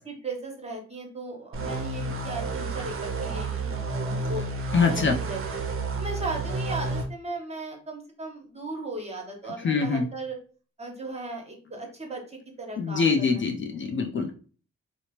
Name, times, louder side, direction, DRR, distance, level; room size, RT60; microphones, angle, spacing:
voice 1, 0.1-4.4 4.9-5.4 5.9-10.4 10.8-13.4, right 2 dB, 20° right, 1 dB, 1.0 m, -37 dB
sound 1, 1.5-7.0, right 3 dB, 45° right, 0.6 m, -31 dB
voice 2, 4.7-5.2 9.6-10.0 12.8-14.3, left 5 dB, 40° left, 3 dB, 0.4 m, -24 dB
2.7 x 2.1 x 2.9 m, 0.39 s
supercardioid pair, 50°, 29 cm